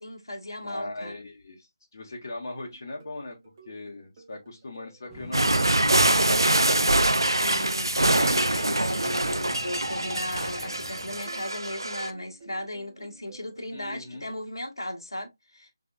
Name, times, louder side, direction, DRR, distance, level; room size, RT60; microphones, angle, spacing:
voice 1, 0.0-1.1 7.2-15.7, left 1 dB, 75° left, 1.1 m, -36 dB
voice 2, 0.6-3.4 3.6-6.9 13.7-14.2, left 2 dB, 45° left, 1.0 m, -40 dB
sound 1, 2.6-8.1 8.9-11.0 11.2-14.2, right 4 dB, 30° right, 1.3 m, -52 dB
sound 2, 5.1-11.2, left 1 dB, 5° left, 0.6 m, -47 dB
sound 3, 5.3-12.1, right 1 dB, 75° right, 0.5 m, -24 dB
3.8 x 3.3 x 2.3 m
figure-of-eight pair, 155°, 2 cm